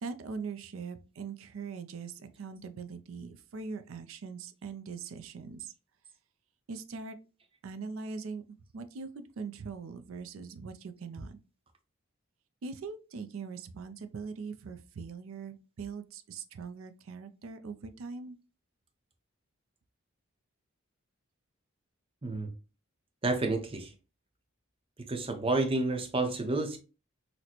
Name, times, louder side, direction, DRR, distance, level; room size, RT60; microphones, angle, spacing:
voice 1, 0.0-5.7 6.7-7.2 7.6-8.4 8.7-11.4 12.6-18.3, right 5 dB, 70° right, 0.4 m, -41 dB
voice 2, 22.2-22.5 23.2-23.9 25.0-26.8, right 2 dB, 25° right, 0.6 m, -30 dB
4.0 x 2.1 x 2.8 m
head